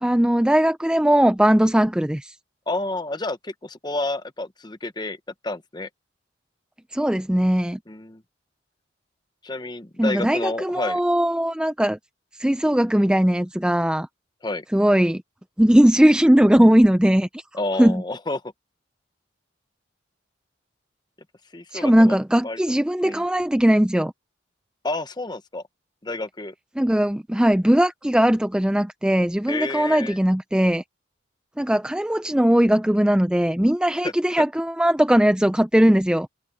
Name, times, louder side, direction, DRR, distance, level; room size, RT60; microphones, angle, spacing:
voice 1, 0.0-2.3 6.9-7.8 10.0-12.0 12.4-14.1 14.7-15.2 15.6-17.4 17.8-18.0 21.7-24.1 26.8-30.8 31.6-36.3, equal, 5° right, 0.4 m, -19 dB
voice 2, 2.7-5.2 5.4-5.9 7.9-8.2 9.4-11.0 14.4-14.6 17.5-18.4 21.5-22.2 22.4-22.6 23.0-23.2 24.8-25.6 26.0-26.5 29.5-30.2 34.0-34.1, left 2 dB, 25° left, 1.0 m, -29 dB
head